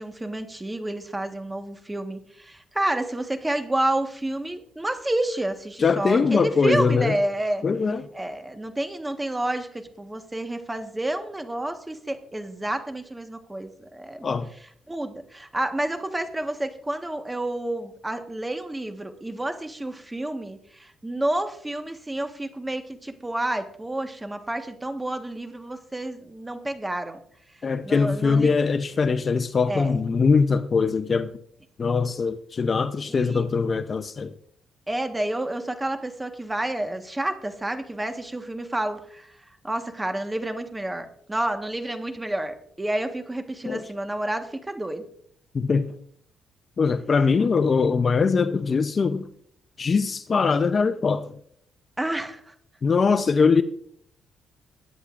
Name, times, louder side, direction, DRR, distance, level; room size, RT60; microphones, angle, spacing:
voice 1, 0.0-7.6 8.1-14.4 14.9-27.2 27.8-28.6 29.7-29.9 33.1-33.4 34.9-39.3 39.6-45.0 52.0-52.5, right 1 dB, 15° right, 1.4 m, -29 dB
voice 2, 5.8-7.2 7.6-8.0 14.2-14.5 27.6-31.3 31.8-34.3 43.6-43.9 45.5-45.9 46.8-49.2 49.8-51.3 52.8-53.6, left 5 dB, 40° left, 0.7 m, -22 dB
21.5 x 9.8 x 2.5 m
cardioid pair, 90°, 0 cm